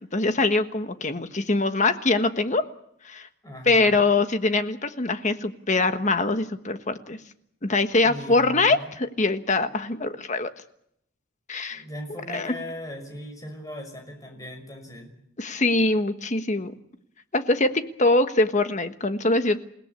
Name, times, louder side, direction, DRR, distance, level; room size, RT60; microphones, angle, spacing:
voice 1, 0.0-2.6 3.0-3.3 3.7-7.2 7.6-10.5 11.5-11.8 12.3-12.5 15.4-16.7 17.3-19.6, left 2 dB, 35° left, 9 dB, 1.3 m, -23 dB
voice 2, 3.4-4.0 8.0-8.9 11.7-15.1, left 1 dB, 15° left, 4 dB, 5.8 m, -38 dB
28.5 x 17.5 x 8.4 m, 0.74 s
head